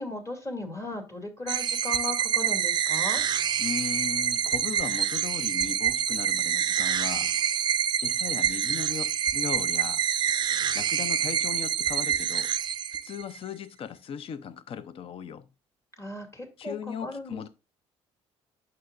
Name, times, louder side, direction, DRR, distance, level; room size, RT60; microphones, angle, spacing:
voice 1, 0.0-3.2 16.0-17.5, left 2 dB, 25° left, 2.4 m, -37 dB
sound 1, 1.5-13.4, right 9 dB, 40° right, 0.4 m, -27 dB
voice 2, 3.6-7.4 8.0-10.0 10.7-12.5 13.0-15.4 16.6-17.5, left 7 dB, 50° left, 0.6 m, -37 dB
9.1 x 6.1 x 2.5 m
cardioid pair, 95°, 12 cm